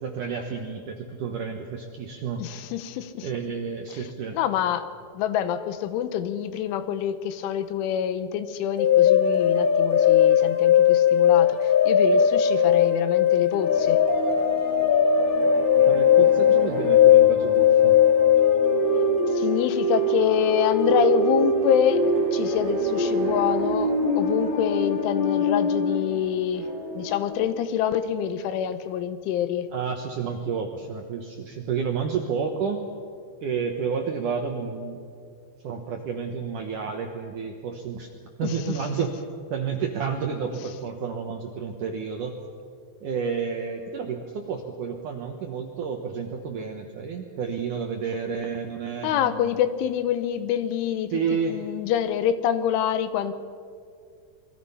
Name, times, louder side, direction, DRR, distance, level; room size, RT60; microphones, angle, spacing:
voice 1, 0.0-2.4 3.2-4.4 15.9-18.0 29.7-32.9 33.4-35.0 35.6-38.1 38.4-39.1 39.5-42.4 43.0-49.6 51.1-51.6, right 6 dB, 70° right, 3 dB, 2.0 m, -30 dB
voice 2, 2.4-3.3 3.9-4.0 4.3-4.9 5.2-14.0 19.3-22.0 22.3-26.7 27.0-29.7 38.4-38.8 49.0-51.1 51.5-53.3, left 9 dB, 85° left, 11 dB, 3.5 m, -26 dB
sound 1, 8.8-26.2, left 7 dB, 35° left, 0.7 m, -20 dB
sound 2, 13.5-27.3, left 1 dB, 50° right, 7.4 m, -34 dB
27.5 x 22.5 x 5.7 m, 2.2 s
omnidirectional pair, 5.4 m